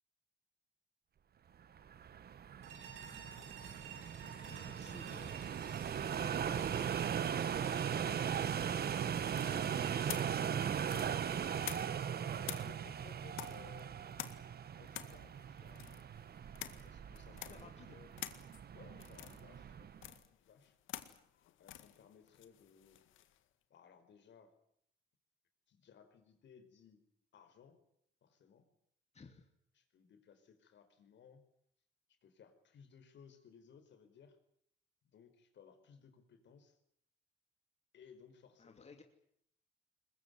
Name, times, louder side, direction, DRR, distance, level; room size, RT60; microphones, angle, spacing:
sound 1, 1.8-20.1, right 8 dB, 55° right, 1.3 m, -39 dB
sound 2, 2.6-11.7, right 6 dB, 90° right, 7.2 m, -53 dB
voice 1, 4.5-5.4 17.5-18.0 29.1-29.5 38.6-39.0, left 4 dB, 35° left, 5 dB, 2.8 m, -57 dB
voice 2, 6.6-7.0 10.8-14.4 14.7-15.8 16.8-18.1 18.7-19.9 20.3-20.7 21.6-23.0 23.7-24.6 25.7-27.0 27.3-27.8 28.2-28.7 29.7-31.4 32.1-34.4 35.1-36.8 37.9-39.0, left 7 dB, 65° left, 8 dB, 5.0 m, -62 dB
sound 3, 9.3-12.1 12.4-23.4, left 13 dB, 85° left, 1.9 m, -49 dB
21.5 x 21.5 x 9.7 m, 0.70 s
cardioid pair, 90°, 20 cm